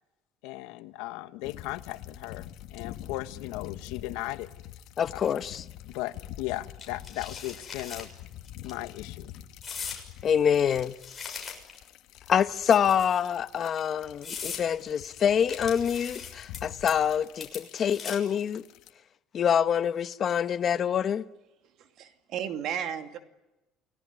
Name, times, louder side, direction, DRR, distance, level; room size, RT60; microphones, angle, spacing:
voice 1, 0.4-4.5 5.9-8.1 8.6-9.3, left 17 dB, 90° left, 1.3 m, -37 dB
sound 1, 1.4-18.9, left 12 dB, 70° left, 1.7 m, -46 dB
voice 2, 5.0-5.6 10.2-11.0 12.3-18.6 19.3-21.2, left 8 dB, 40° left, 1.0 m, -26 dB
sound 2, 6.8-8.1 8.5-8.7 9.6-10.0 10.7-11.8 12.7-13.3 13.8-13.9 14.2-14.6 15.5-16.6 16.9-17.2 17.4-18.3, left 6 dB, 25° left, 6.5 m, -39 dB
voice 3, 21.8-23.2, right 8 dB, 60° right, 2.5 m, -34 dB
29.5 x 18.0 x 9.7 m
cardioid pair, 125°, 0 cm